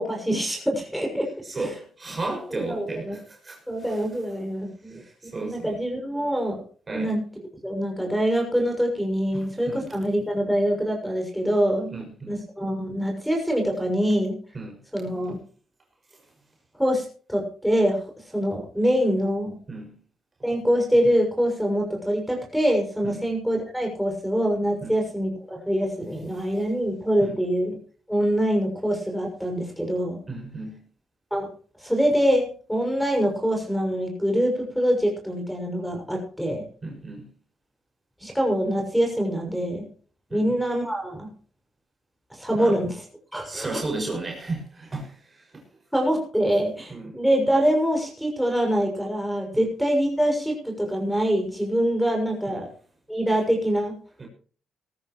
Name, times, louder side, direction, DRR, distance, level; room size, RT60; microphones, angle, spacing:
voice 1, 0.0-1.3 1.5-1.6 2.5-3.2 3.7-5.0 5.3-6.6 6.9-7.2 7.6-14.4 14.9-15.4 16.8-18.0 18.3-19.6 20.4-27.8 28.1-30.2 31.3-31.5 31.8-36.6 38.2-39.8 40.3-41.3 42.3-43.0 43.3-43.8 45.9-52.7 53.1-53.9, equal, ahead, 0 dB, 6.5 m, -24 dB
voice 2, 1.4-4.0 4.8-5.8 6.9-7.2 9.3-10.0 11.9-12.4 14.5-14.8 16.1-16.2 19.7-20.0 23.0-23.3 24.8-25.0 26.3-26.4 27.2-27.4 30.3-30.8 36.8-37.3 40.3-40.5 42.5-42.8 43.4-45.6 46.9-47.2 49.5-49.7 52.5-52.6 54.2-54.3, right 2 dB, 30° right, 1 dB, 6.2 m, -34 dB
20.0 x 13.5 x 3.1 m, 0.41 s
cardioid pair, 90°, 0 cm